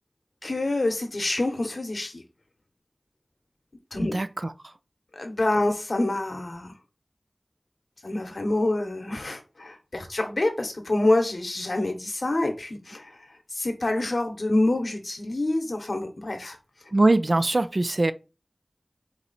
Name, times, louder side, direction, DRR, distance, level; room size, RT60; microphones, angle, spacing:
voice 1, 0.4-2.2 3.9-4.1 5.1-6.7 8.0-13.1 13.5-16.6, left 2 dB, 80° left, 1.0 m, -26 dB
voice 2, 4.0-4.7 16.9-18.1, right 2 dB, 60° right, 0.3 m, -23 dB
4.7 x 2.8 x 4.1 m
wide cardioid pair, 45°, 0 cm